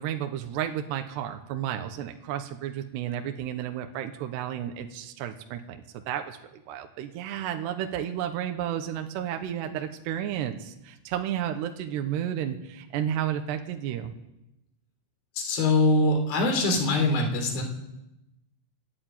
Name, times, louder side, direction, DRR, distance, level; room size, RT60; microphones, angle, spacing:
voice 1, 0.0-6.4 6.7-14.1, right 10 dB, 70° right, 6 dB, 2.7 m, -32 dB
voice 2, 15.4-17.6, left 2 dB, 50° left, 4 dB, 5.0 m, -23 dB
27.0 x 11.5 x 9.0 m, 0.92 s
omnidirectional pair, 6.0 m